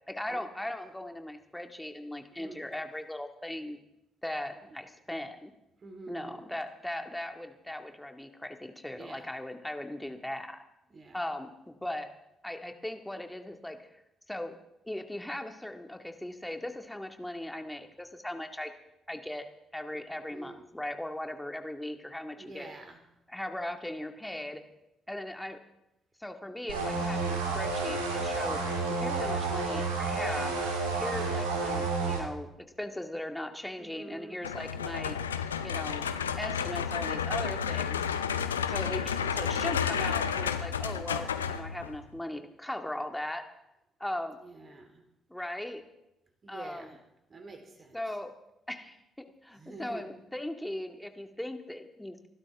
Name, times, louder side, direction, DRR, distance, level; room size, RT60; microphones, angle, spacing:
voice 1, 0.1-3.8 4.2-5.5 6.1-10.6 11.1-12.1 12.4-13.9 14.3-14.6 14.8-18.7 19.1-19.5 19.7-22.7 23.3-24.6 25.1-25.6 26.2-28.6 28.9-30.6 31.0-32.5 32.8-35.2 35.6-36.1 36.4-38.1 38.7-43.4 44.0-44.4 45.3-45.8 46.5-46.9 47.9-48.3 48.7-49.0 49.4-52.3, left 1 dB, 10° left, 5 dB, 2.1 m, -38 dB
voice 2, 5.8-6.4 8.9-9.3 10.9-11.2 20.3-20.6 22.4-23.0 33.8-34.4 38.8-39.2 44.4-45.0 46.4-47.0 47.3-48.0 49.6-50.1, right 3 dB, 40° right, 4 dB, 3.8 m, -47 dB
sound 1, 26.7-32.2, right 3 dB, 85° right, 2.4 m, -30 dB
sound 2, 34.4-42.0, left 7 dB, 90° left, 0.6 m, -31 dB
27.0 x 12.5 x 3.6 m, 0.89 s
hypercardioid pair, 45°, 0 cm